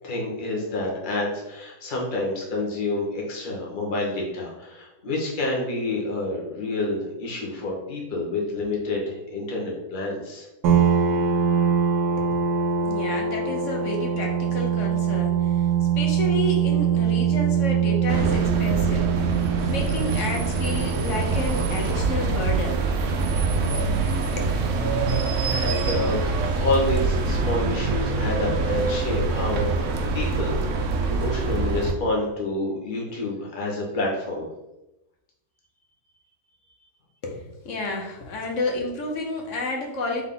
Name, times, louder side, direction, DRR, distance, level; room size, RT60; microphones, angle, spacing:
voice 1, 0.0-10.5 25.4-26.2 26.5-30.7 31.1-34.5, left 2 dB, 35° left, -3 dB, 1.1 m, -28 dB
sound 1, 10.6-23.9, right 7 dB, 80° right, 1.2 m, -24 dB
voice 2, 12.8-15.7 16.0-19.2 19.7-22.9 24.1-24.5 37.2-40.3, left 2 dB, 60° left, 1 dB, 1.0 m, -30 dB
sound 2, 18.1-31.9, right 3 dB, 65° right, 0.8 m, -25 dB
3.7 x 3.4 x 3.7 m, 0.95 s
omnidirectional pair, 1.7 m